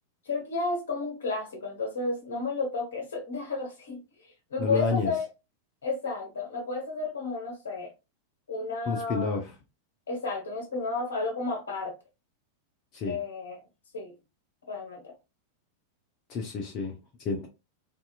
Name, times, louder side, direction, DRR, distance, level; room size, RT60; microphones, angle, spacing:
voice 1, 0.2-5.3 5.8-7.9 8.5-9.4 10.1-12.0 13.0-13.6 13.9-14.1 14.7-15.1, left 3 dB, 65° left, 1.0 m, -32 dB
voice 2, 4.6-5.1 8.9-9.5 12.9-13.2 16.3-16.9 17.2-17.5, left 4 dB, 35° left, 0.6 m, -29 dB
2.7 x 2.5 x 2.3 m
figure-of-eight pair, 90°, 0 cm